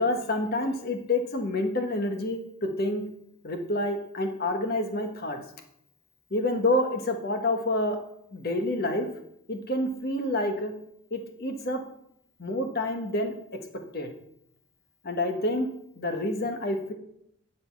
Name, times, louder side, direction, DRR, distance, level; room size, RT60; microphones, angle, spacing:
voice 1, 0.0-3.0 3.4-5.4 6.3-8.0 8.3-9.1 9.5-10.7 11.1-11.8 12.4-13.3 13.7-14.1 15.0-15.7 16.0-16.9, left 1 dB, 50° left, 5 dB, 1.3 m, -28 dB
10.5 x 5.2 x 5.8 m, 0.74 s
head